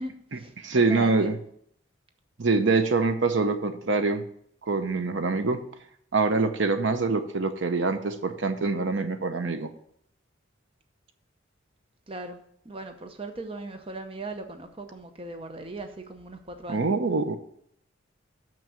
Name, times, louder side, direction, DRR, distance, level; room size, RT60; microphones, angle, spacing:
voice 1, 0.0-1.3 12.1-16.9, right 2 dB, 30° right, 6 dB, 0.7 m, -39 dB
voice 2, 0.6-1.4 2.4-4.2 4.7-5.6 6.1-9.7 16.7-17.4, right 3 dB, 70° right, 9 dB, 0.8 m, -25 dB
6.2 x 6.1 x 6.9 m, 0.66 s
head